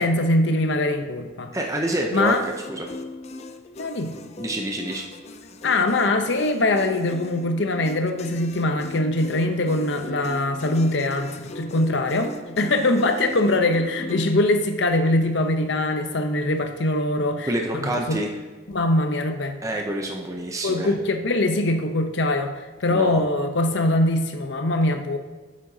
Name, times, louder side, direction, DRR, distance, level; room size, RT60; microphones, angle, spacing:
voice 1, 0.0-1.5 2.1-2.4 3.8-4.1 5.6-18.2 18.7-19.6 20.6-25.2, left 2 dB, 65° left, 7 dB, 0.7 m, -22 dB
voice 2, 1.5-2.4 2.7-2.9 4.4-5.0 17.5-18.3 19.6-20.9 22.9-23.2, right 1 dB, 15° right, 1 dB, 0.6 m, -27 dB
sound 1, 1.9-14.3, left 2 dB, 35° left, 0.4 m, -39 dB
8.7 x 7.4 x 2.7 m, 1.3 s
head